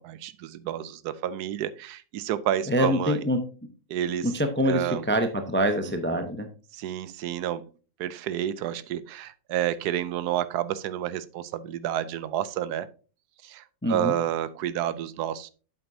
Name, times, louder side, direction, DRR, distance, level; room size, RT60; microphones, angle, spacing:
voice 1, 0.0-3.2 3.9-4.3 4.7-5.1 6.1-6.2 6.7-7.6 8.0-12.9 13.4-15.5, right 11 dB, 85° right, 16 dB, 1.1 m, -30 dB
voice 2, 2.7-3.4 4.2-6.5 13.8-14.1, equal, 15° left, 7 dB, 0.4 m, -25 dB
8.1 x 7.7 x 2.7 m, 0.37 s
omnidirectional pair, 1.6 m